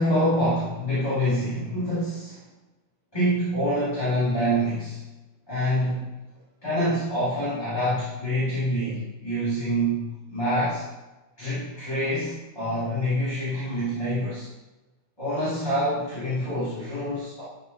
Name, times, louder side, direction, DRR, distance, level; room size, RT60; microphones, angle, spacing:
voice 1, 0.0-2.5 3.1-5.0 5.5-6.1 6.6-10.8 11.4-14.5 15.2-17.4, equal, 20° left, -13 dB, 2.7 m, -26 dB
12.0 x 4.4 x 2.8 m, 1.1 s
omnidirectional pair, 1.2 m